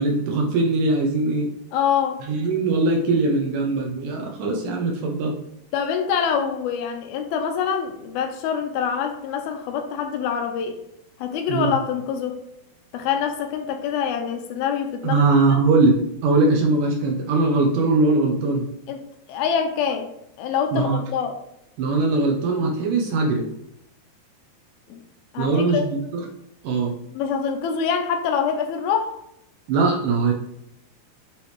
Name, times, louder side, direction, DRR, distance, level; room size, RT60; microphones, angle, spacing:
voice 1, 0.0-1.5 2.2-5.4 11.5-11.7 15.0-18.7 20.7-21.0 21.8-23.4 25.4-25.8 26.1-26.3 26.6-26.9 29.7-30.3, right 3 dB, 80° right, 0 dB, 1.9 m, -21 dB
voice 2, 1.7-2.2 5.7-10.8 11.2-12.4 12.9-15.6 18.9-19.0 19.3-20.1 20.4-21.4 24.9-25.0 25.3-25.8 27.1-29.2, left 7 dB, 80° left, 5 dB, 2.3 m, -25 dB
9.0 x 3.3 x 3.2 m, 0.79 s
omnidirectional pair, 4.7 m